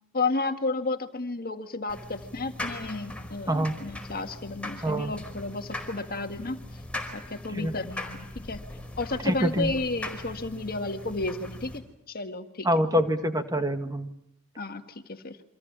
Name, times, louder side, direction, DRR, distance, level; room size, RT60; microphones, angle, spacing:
voice 1, 0.1-6.6 7.1-8.6 9.0-12.7 14.6-15.4, left 3 dB, 45° left, 7 dB, 1.8 m, -32 dB
sound 1, 1.9-11.8, left 1 dB, 5° left, 4.8 m, -40 dB
voice 2, 9.2-9.7 12.7-14.1, equal, 15° right, 7 dB, 1.9 m, -25 dB
29.0 x 25.5 x 7.5 m, 0.74 s
head